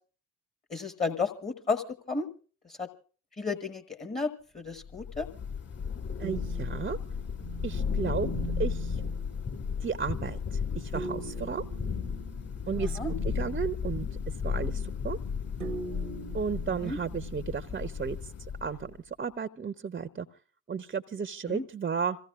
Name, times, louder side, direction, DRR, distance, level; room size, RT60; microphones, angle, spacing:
voice 1, 0.7-2.3 2.8-2.9 3.4-5.3 12.8-13.1 16.8-17.0 21.5-21.6, left 4 dB, 20° left, 8 dB, 1.4 m, -32 dB
Thunder / Rain, 4.8-18.9, left 6 dB, 40° left, 3.0 m, -34 dB
voice 2, 6.2-7.0 7.6-8.3 8.6-9.0 9.8-11.6 12.7-13.0 13.2-14.0 14.4-15.2 16.3-18.2 18.6-20.3 20.7-22.2, right 6 dB, 25° right, 11 dB, 0.8 m, -33 dB
sound 1, 6.2-9.3 10.9-13.9 15.6-17.8, right 5 dB, 70° right, 1.0 m, -42 dB
27.5 x 16.0 x 2.4 m, 0.40 s
figure-of-eight pair, 40°, 39 cm